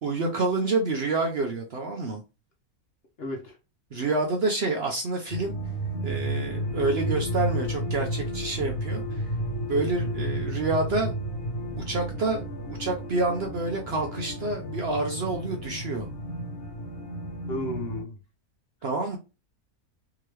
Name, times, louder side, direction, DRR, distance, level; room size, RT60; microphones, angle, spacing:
voice 1, 0.0-2.2 3.9-5.5 6.0-9.2 9.7-11.2 11.9-16.1 18.8-19.2, right 3 dB, 55° right, 0.8 m, -28 dB
voice 2, 3.2-3.5 17.5-18.2, left 1 dB, 50° left, 0.9 m, -33 dB
sound 1, 5.3-18.0, right 1 dB, 65° left, 1.3 m, -32 dB
3.6 x 2.9 x 3.2 m
omnidirectional pair, 1.6 m